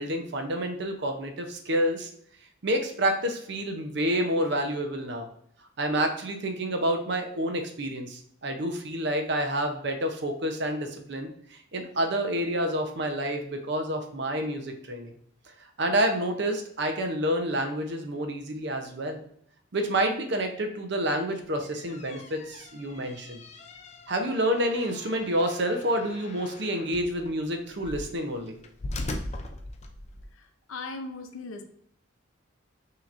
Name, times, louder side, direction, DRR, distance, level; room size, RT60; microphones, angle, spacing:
voice 1, 0.0-2.1 2.6-5.3 5.8-15.1 15.8-19.2 19.7-23.4 24.1-28.6, right 1 dB, 55° right, 5 dB, 0.6 m, -28 dB
sound 1, 21.5-30.3, left 1 dB, 30° left, 0.4 m, -41 dB
voice 2, 30.3-31.6, left 3 dB, 80° left, 6 dB, 0.6 m, -39 dB
5.8 x 2.9 x 2.5 m, 0.65 s
head